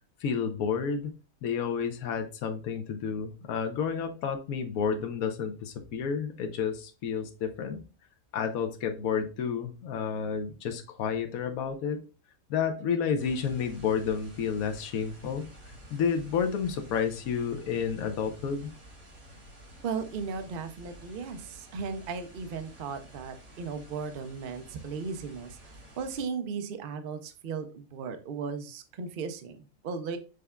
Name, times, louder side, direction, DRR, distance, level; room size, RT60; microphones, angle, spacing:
voice 1, 0.2-1.1 1.4-7.8 8.3-12.1 12.5-15.5 15.9-18.7, left 6 dB, 85° left, 6 dB, 1.1 m, -30 dB
sound 1, 13.2-26.2, equal, 90° right, 2.7 m, -51 dB
voice 2, 19.8-30.2, right 5 dB, 55° right, 9 dB, 0.6 m, -36 dB
6.4 x 3.4 x 2.3 m, 0.34 s
omnidirectional pair, 1.4 m